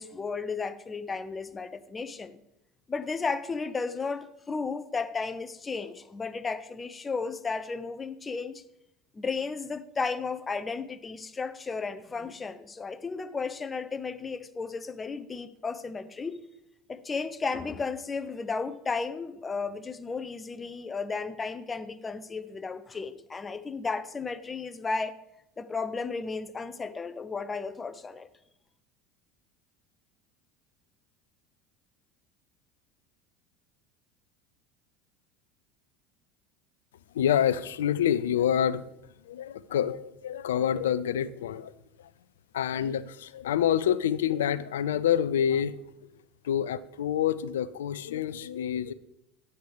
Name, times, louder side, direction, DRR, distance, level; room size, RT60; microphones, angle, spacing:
voice 1, 0.0-2.4 2.9-8.6 9.1-16.4 16.9-25.2 25.6-28.3, left 4 dB, 25° left, 0.6 m, -34 dB
voice 2, 37.1-38.8 39.2-41.7 42.0-42.1 42.5-45.8 46.4-48.9, left 9 dB, 80° left, 0.4 m, -27 dB
9.7 x 7.9 x 3.4 m
hypercardioid pair, 80°, 0 cm